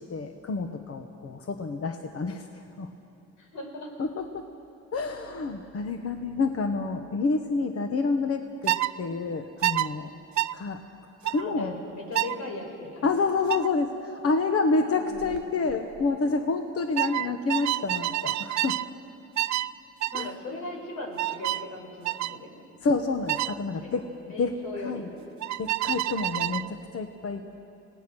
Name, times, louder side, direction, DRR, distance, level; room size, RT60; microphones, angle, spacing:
voice 1, 0.0-2.9 4.0-4.4 4.9-10.1 10.5-10.8 11.2-11.7 13.0-18.8 20.1-20.3 22.8-24.0 24.4-24.6 24.8-25.1 25.6-27.5, left 4 dB, 50° left, 6 dB, 1.2 m, -28 dB
voice 2, 3.4-3.9 11.4-13.1 14.9-15.4 20.1-22.6 23.8-25.1, left 2 dB, 85° left, 1 dB, 5.3 m, -39 dB
sound 1, 8.7-8.9 9.6-9.9 10.4-10.5 11.2-11.4 12.1-12.4 13.5-13.7 15.2-15.4 15.7-16.0 17.0-18.9 19.4-19.7 20.0-20.3 21.2-21.6 22.0-22.4 23.3-23.5 25.4-26.7, right 15 dB, 65° right, 0.6 m, -28 dB
28.0 x 18.5 x 6.3 m, 2.7 s
cardioid pair, 90°, 30 cm